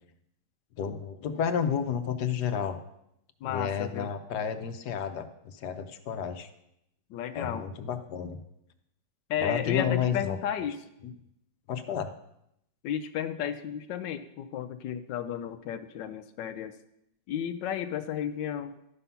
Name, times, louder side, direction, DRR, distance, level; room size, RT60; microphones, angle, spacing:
voice 1, 0.8-2.8 3.4-6.5 7.3-8.4 9.4-10.4 11.0-11.1 11.7-12.1, left 7 dB, 70° left, 9 dB, 1.3 m, -31 dB
voice 2, 3.4-4.1 7.1-7.7 9.3-10.8 12.8-16.8 17.3-18.7, left 9 dB, 85° left, 9 dB, 1.3 m, -33 dB
12.0 x 5.5 x 5.7 m, 0.80 s
omnidirectional pair, 1.9 m